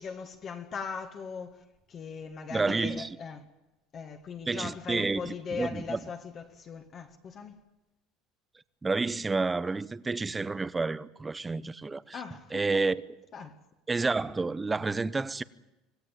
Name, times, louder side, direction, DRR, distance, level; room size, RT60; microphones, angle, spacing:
voice 1, 0.0-3.4 3.9-7.6 12.1-12.8 13.3-13.6, left 6 dB, 35° left, 1.9 m, -40 dB
voice 2, 2.5-3.1 4.5-6.0 8.8-12.2 12.5-13.0 13.9-15.4, right 3 dB, 15° right, 0.8 m, -30 dB
26.0 x 17.0 x 9.1 m
cardioid pair, 150°, 0 cm